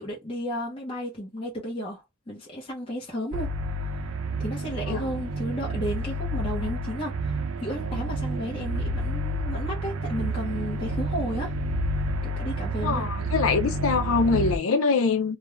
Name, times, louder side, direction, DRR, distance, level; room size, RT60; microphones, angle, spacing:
voice 1, 0.0-3.5 4.4-7.4 7.6-11.6 12.2-13.1, equal, 25° left, 0.8 m, -33 dB
sound 1, 3.3-14.6, right 2 dB, 85° right, 0.5 m, -29 dB
voice 2, 12.8-15.4, left 4 dB, 80° left, 0.5 m, -24 dB
2.4 x 2.3 x 3.1 m
head